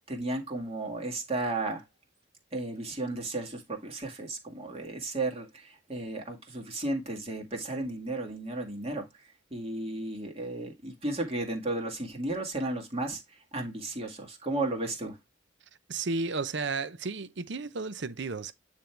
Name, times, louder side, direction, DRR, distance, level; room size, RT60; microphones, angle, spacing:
voice 1, 0.1-1.8 2.5-9.1 9.5-15.2, right 2 dB, 30° right, 1.9 m, -34 dB
voice 2, 15.9-18.5, right 3 dB, 60° right, 0.7 m, -33 dB
9.2 x 3.6 x 4.4 m
head